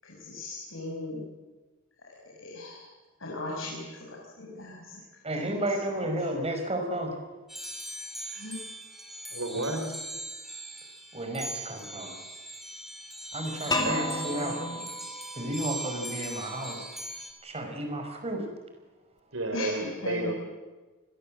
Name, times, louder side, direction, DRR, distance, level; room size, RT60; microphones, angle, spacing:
voice 1, 0.0-1.2 2.4-2.8 3.2-4.9 5.4-5.6 5.9-6.1 8.3-8.6 13.6-14.8 19.5-20.3, left 2 dB, 70° left, -3 dB, 6.2 m, -38 dB
voice 2, 5.2-7.1 9.6-9.8 11.1-12.1 13.3-14.6 15.4-16.8 17.4-18.4, right 1 dB, 30° right, 4 dB, 5.4 m, -32 dB
sound 1, 7.5-17.3, right 1 dB, ahead, 4.8 m, -40 dB
voice 3, 9.3-9.8 13.7-14.1 19.3-20.3, right 2 dB, 90° right, 5 dB, 4.1 m, -31 dB
sound 2, 13.7-16.6, left 2 dB, 20° left, 3.2 m, -34 dB
28.0 x 21.5 x 7.7 m, 1.2 s
head